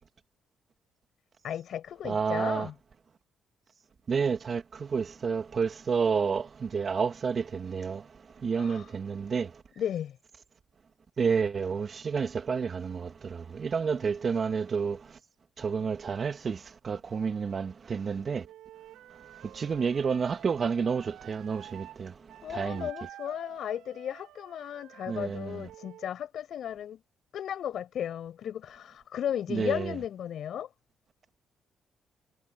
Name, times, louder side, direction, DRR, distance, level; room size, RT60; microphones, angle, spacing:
voice 1, 1.4-2.7 8.6-8.8 9.8-10.2 22.4-27.0 27.3-30.7, left 10 dB, 70° left, 6.4 m, -35 dB
voice 2, 2.0-2.7 4.1-8.0 8.4-9.5 11.2-15.0 15.6-16.6 16.8-18.4 19.5-22.1 22.5-22.9 25.1-25.6 29.5-30.0, right 5 dB, 45° right, 2.0 m, -30 dB
Wind instrument woodwind instrument, 18.4-22.0 22.3-26.1, right 13 dB, 90° right, 4.4 m, -50 dB
cardioid pair, 90°, 0 cm